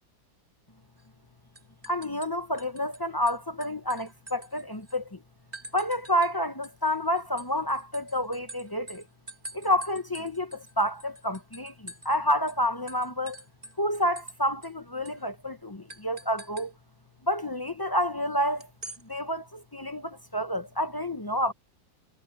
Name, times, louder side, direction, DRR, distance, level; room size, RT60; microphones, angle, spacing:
sound 1, 1.0-1.3 1.6-3.0 3.3-5.0 5.5-6.3 6.6-12.2 12.5-12.6 12.9-14.4 14.6-14.7 15.1-15.2 15.9-16.7 18.6-19.0, right 1 dB, 20° right, 5.6 m, -45 dB
voice 1, 1.9-5.2 5.7-9.0 9.5-13.4 13.8-16.7 17.3-18.7 19.1-21.5, equal, 30° left, 0.4 m, -29 dB
omnidirectional pair, 2.0 m